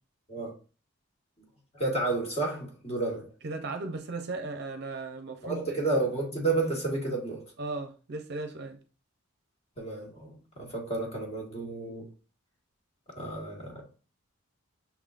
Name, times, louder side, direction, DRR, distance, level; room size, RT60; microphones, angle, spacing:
voice 1, 1.7-3.3 5.4-7.4 9.8-12.1 13.2-13.8, right 3 dB, 30° left, 1.5 m, -31 dB
voice 2, 3.4-5.8 7.6-8.8, right 3 dB, 50° right, 0.6 m, -36 dB
5.9 x 3.6 x 2.5 m
head